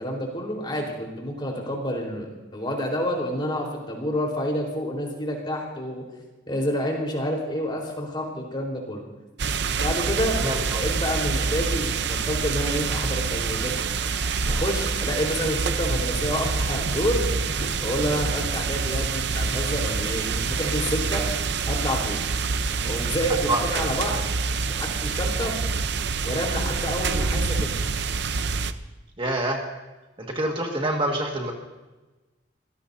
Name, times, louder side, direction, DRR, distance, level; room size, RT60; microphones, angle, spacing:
voice 1, 0.0-6.0 6.5-9.0 9.7-10.4 10.7-13.8 14.5-22.2 22.8-24.2 24.7-25.6 26.2-27.8, equal, 25° left, 0 dB, 4.2 m, -29 dB
sound 1, 9.4-28.7, right 4 dB, 65° right, 0.7 m, -26 dB
voice 2, 10.4-10.8 23.5-23.6 29.2-29.6 30.2-31.5, right 1 dB, 30° right, 0 dB, 1.8 m, -26 dB
26.5 x 17.5 x 2.7 m, 1.2 s
head